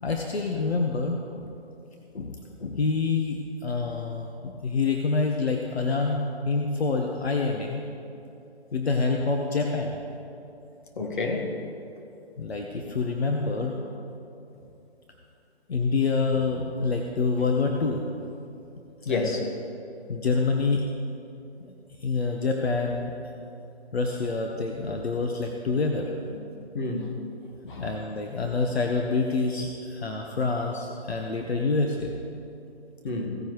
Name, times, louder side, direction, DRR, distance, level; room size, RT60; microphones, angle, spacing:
voice 1, 0.0-1.5 2.1-7.8 8.7-10.0 12.4-13.8 15.7-18.0 19.0-19.3 20.1-20.8 21.6-21.7 22.0-23.1 23.9-26.1 27.7-32.1, left 4 dB, 70° left, 2 dB, 1.1 m, -27 dB
voice 2, 11.0-11.5 13.6-13.7 19.0-19.5 26.3-26.4 26.7-27.1 27.7-27.9 33.0-33.3, left 3 dB, 50° left, 1 dB, 1.8 m, -29 dB
16.0 x 9.9 x 3.2 m, 2.7 s
figure-of-eight pair, 150°, 32 cm